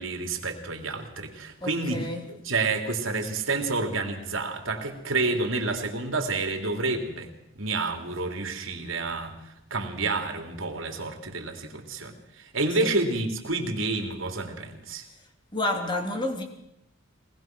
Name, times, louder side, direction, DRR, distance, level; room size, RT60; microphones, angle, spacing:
voice 1, 0.0-9.4 9.7-15.0, right 3 dB, 80° right, 3.3 m, -29 dB
voice 2, 1.6-2.3 12.8-12.9 15.5-16.4, left 1 dB, 25° left, 3.2 m, -30 dB
23.5 x 19.5 x 6.1 m
head